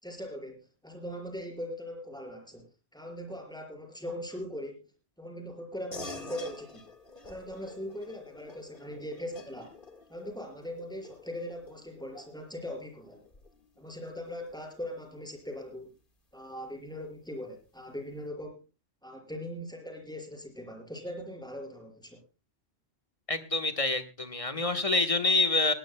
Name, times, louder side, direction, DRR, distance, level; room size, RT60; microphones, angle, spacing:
voice 1, 0.0-4.9 5.2-6.9 7.2-9.7 10.1-13.2 13.8-15.9 16.3-18.6 19.0-22.2, equal, 5° left, 2 dB, 5.2 m, -40 dB
sound 1, 5.9-15.8, left 2 dB, 50° left, 2.0 m, -49 dB
voice 2, 23.3-25.7, left 3 dB, 30° left, 7 dB, 1.4 m, -27 dB
19.5 x 17.5 x 2.2 m, 0.30 s
omnidirectional pair, 1.1 m